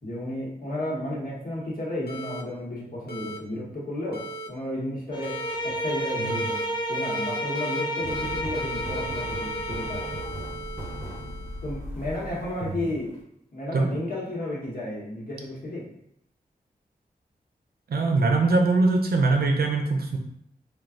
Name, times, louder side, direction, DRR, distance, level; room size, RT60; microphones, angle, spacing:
voice 1, 0.0-6.6 6.9-10.2 11.6-13.2 13.5-15.9, left 1 dB, 65° left, -5 dB, 1.1 m, -33 dB
sound 1, 2.1-2.4 3.1-3.4 4.1-4.5 5.2-5.5 6.3-6.6 7.0-7.8 8.1-11.8, right 1 dB, 90° left, 0.5 m, -38 dB
Bowed string instrument, 5.1-10.3, equal, 30° left, 0.4 m, -31 dB
voice 2, 6.2-6.5 12.6-12.9 13.7-13.9 17.9-20.2, right 3 dB, 80° right, 2 dB, 0.5 m, -22 dB
sound 2, 8.0-13.2, equal, 15° right, 0.8 m, -38 dB
3.2 x 2.3 x 2.4 m, 0.74 s
wide cardioid pair, 65°, 16 cm